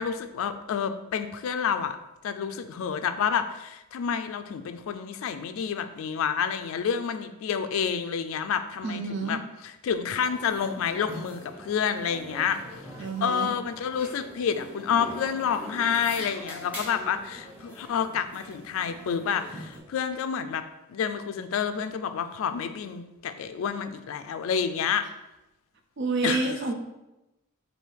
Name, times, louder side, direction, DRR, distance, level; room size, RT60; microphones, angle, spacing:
voice 1, 0.0-2.0 2.2-12.6 13.2-20.6 20.9-25.1 26.2-26.5, left 7 dB, 75° left, 9 dB, 0.3 m, -29 dB
voice 2, 8.8-9.4 13.0-13.5 26.0-26.7, right 3 dB, 55° right, 5 dB, 0.4 m, -29 dB
sound 1, 10.2-19.8, equal, 5° right, 0.8 m, -43 dB
3.3 x 2.7 x 4.4 m, 0.96 s
head